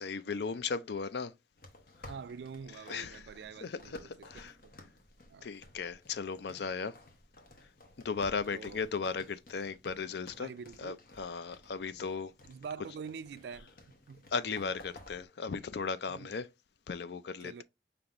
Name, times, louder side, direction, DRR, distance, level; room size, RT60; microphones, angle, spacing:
voice 1, 0.0-1.3 2.0-2.1 2.9-3.2 3.6-4.6 5.4-7.0 8.0-10.5 10.8-12.3 14.3-16.5 16.9-17.6, left 5 dB, 70° left, 0.4 m, -36 dB
sound 1, 1.6-15.3, left 1 dB, 50° left, 1.0 m, -56 dB
voice 2, 2.1-4.7 5.3-5.5 8.5-8.8 10.4-11.0 12.5-13.7 14.1-14.3 16.1-16.3 17.4-17.6, right 6 dB, 75° right, 0.3 m, -45 dB
5.2 x 2.9 x 2.9 m
head